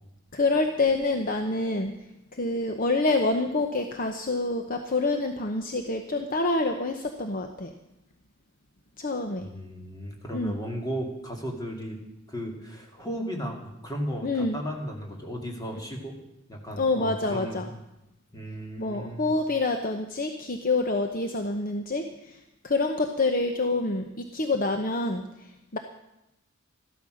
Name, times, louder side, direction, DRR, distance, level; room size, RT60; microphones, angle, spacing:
voice 1, 0.3-1.9 2.3-7.7 9.0-9.5 10.3-10.6 14.2-14.6 16.8-17.7 18.8-25.8, left 2 dB, 40° left, 5 dB, 0.9 m, -27 dB
voice 2, 9.4-12.0 12.3-16.2 16.5-17.6 18.3-19.3, equal, 20° left, 1 dB, 2.4 m, -35 dB
13.5 x 12.5 x 6.4 m, 0.90 s
head